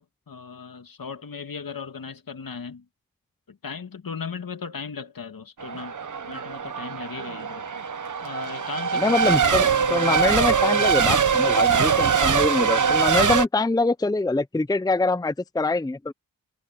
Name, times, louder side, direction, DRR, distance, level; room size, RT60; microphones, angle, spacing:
voice 1, 0.0-2.8 3.5-5.9 6.3-7.7 8.2-10.1 10.8-10.9, left 5 dB, 70° left, 2.3 m, -37 dB
Race car auto racing / Accelerating revving vroom / Mechanisms, 5.6-13.5, right 6 dB, 55° right, 1.1 m, -22 dB
voice 2, 9.0-16.1, left 3 dB, 10° left, 0.6 m, -24 dB
cardioid pair, 60°, 36 cm